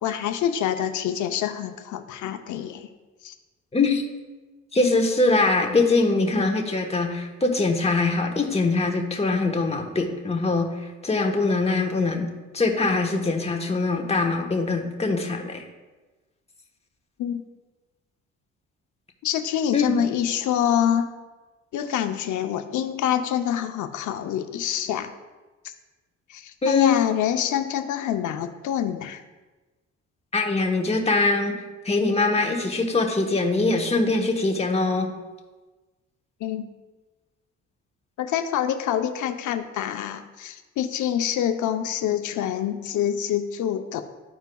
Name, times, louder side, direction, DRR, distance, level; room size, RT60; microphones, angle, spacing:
voice 1, 0.0-2.9 3.2-3.3 17.2-17.4 19.2-21.1 21.7-25.1 26.3-29.2 36.4-36.6 38.2-44.0, left 10 dB, 75° left, 7 dB, 0.7 m, -26 dB
voice 2, 3.7-4.0 4.7-10.7 11.0-15.6 19.7-19.9 26.6-27.0 30.3-31.6 31.8-35.1, left 3 dB, 20° left, 2 dB, 1.1 m, -22 dB
13.0 x 4.6 x 2.3 m, 1.2 s
cardioid pair, 90°, 30 cm